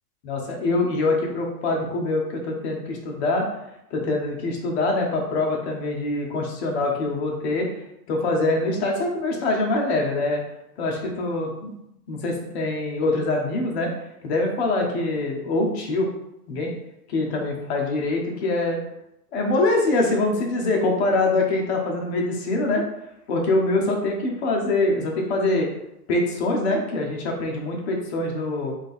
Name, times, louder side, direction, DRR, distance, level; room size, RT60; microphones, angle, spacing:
voice 1, 0.2-3.5 3.9-7.6 8.1-10.4 10.8-11.7 12.1-13.9 14.2-16.1 16.5-16.7 17.1-18.8 19.3-22.8 23.3-25.7 26.1-28.7, left 2 dB, 45° left, 0 dB, 1.0 m, -24 dB
3.9 x 2.6 x 3.6 m, 0.82 s
hypercardioid pair, 160°, 46 cm